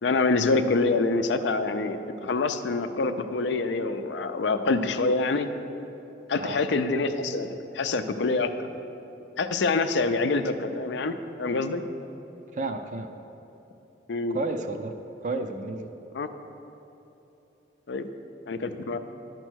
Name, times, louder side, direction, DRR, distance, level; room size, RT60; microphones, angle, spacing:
voice 1, 0.0-5.5 6.3-7.5 7.7-8.5 9.4-11.8 14.1-14.4 16.1-16.3 17.9-18.1 18.5-19.0, left 3 dB, 75° left, 8 dB, 0.5 m, -26 dB
voice 2, 12.6-13.1 14.3-14.9 15.2-15.9, right 3 dB, 45° right, 6 dB, 0.4 m, -31 dB
11.0 x 4.5 x 6.2 m, 2.9 s
head